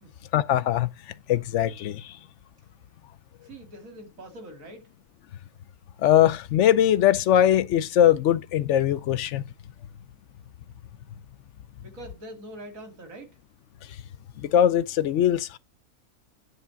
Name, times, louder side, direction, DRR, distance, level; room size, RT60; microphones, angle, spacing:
voice 1, 0.3-0.9 1.3-2.2 6.0-9.4 14.4-15.6, left 11 dB, 65° left, 0.8 m, -21 dB
voice 2, 3.4-4.9 11.8-13.4, right 1 dB, 65° right, 2.4 m, -43 dB
9.6 x 3.6 x 5.7 m
omnidirectional pair, 1.5 m